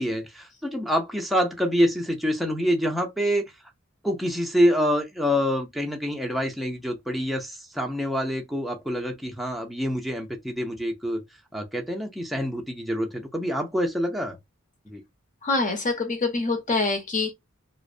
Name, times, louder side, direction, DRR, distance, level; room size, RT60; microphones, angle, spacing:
voice 1, 0.0-3.4 4.0-11.2 11.5-14.4 14.9-15.0, equal, ahead, 0.5 m, -26 dB
voice 2, 15.4-17.3, left 3 dB, 40° left, 0.7 m, -25 dB
2.5 x 2.0 x 2.5 m
head